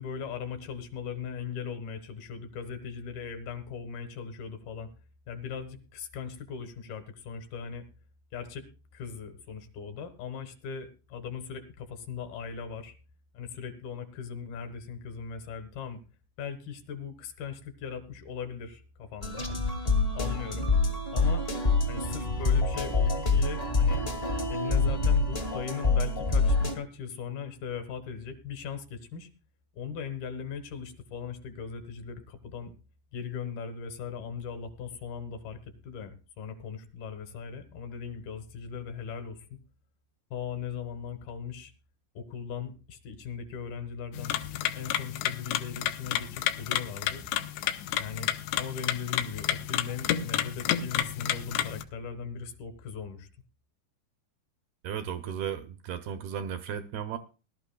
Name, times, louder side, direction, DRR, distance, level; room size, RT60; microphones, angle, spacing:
voice 1, 0.0-4.9 5.3-7.8 8.3-13.0 13.3-16.0 16.4-19.5 20.1-20.7 21.1-21.4 21.9-24.1 24.5-29.3 29.7-32.7 33.1-39.6 40.3-41.7 42.1-47.2 48.0-53.3, left 6 dB, 70° left, 8 dB, 3.0 m, -39 dB
sound 1, 19.2-26.7, left 3 dB, 35° left, 0.9 m, -26 dB
sound 2, 44.1-51.8, left 12 dB, 85° left, 3.1 m, -31 dB
voice 2, 54.8-57.2, right 8 dB, 80° right, 9 dB, 2.3 m, -35 dB
20.5 x 12.5 x 2.3 m, 0.34 s
omnidirectional pair, 5.0 m